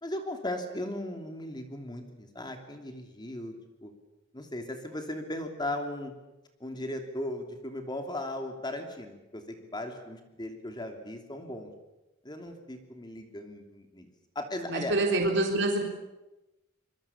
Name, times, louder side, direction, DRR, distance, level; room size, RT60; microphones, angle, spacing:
voice 1, 0.0-3.5 3.8-3.9 4.3-6.1 6.6-11.7 12.2-14.1 14.3-15.0, left 1 dB, 25° left, 5 dB, 2.9 m, -37 dB
voice 2, 14.7-15.8, right 2 dB, 65° right, 1 dB, 4.0 m, -26 dB
26.0 x 23.0 x 7.2 m, 1.0 s
head